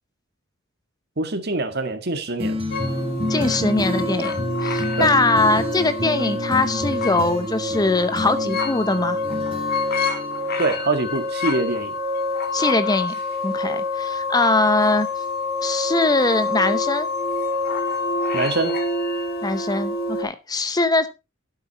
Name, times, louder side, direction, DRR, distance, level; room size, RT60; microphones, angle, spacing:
voice 1, 1.2-2.6 5.0-5.1 10.6-11.9 18.3-18.7, right 3 dB, 50° right, 1.8 m, -24 dB
sound 1, 2.4-10.8, left 1 dB, 25° right, 2.5 m, -29 dB
sound 2, 2.7-20.2, left 2 dB, 50° left, 2.3 m, -26 dB
voice 2, 3.3-9.2 12.5-13.2 13.4-15.1 15.6-17.1 19.4-21.1, left 2 dB, 20° left, 0.7 m, -21 dB
12.5 x 8.0 x 4.1 m
head